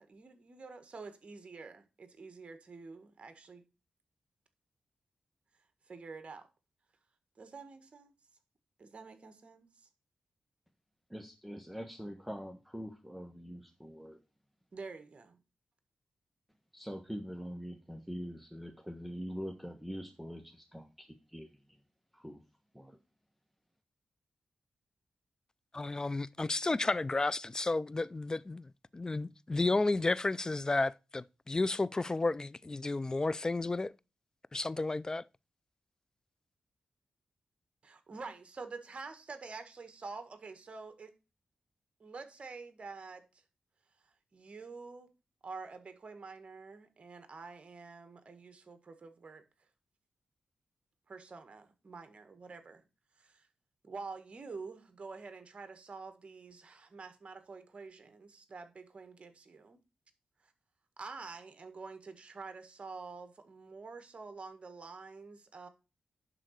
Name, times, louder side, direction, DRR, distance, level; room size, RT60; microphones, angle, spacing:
voice 1, 0.0-3.6 5.9-6.5 7.4-8.1 8.8-9.9 14.7-15.4 37.8-41.1 42.0-43.2 44.3-45.1 45.4-49.4 51.1-52.8 53.2-53.5 53.8-59.8 60.4-60.5 61.0-65.7, right 4 dB, 50° right, 1.6 m, -47 dB
voice 2, 11.1-14.2 16.7-21.6 22.1-22.4 22.7-23.0, equal, 5° right, 1.3 m, -44 dB
voice 3, 25.7-33.9 34.5-35.2, left 3 dB, 25° left, 0.4 m, -32 dB
11.0 x 3.8 x 6.4 m
cardioid pair, 65°, 3 cm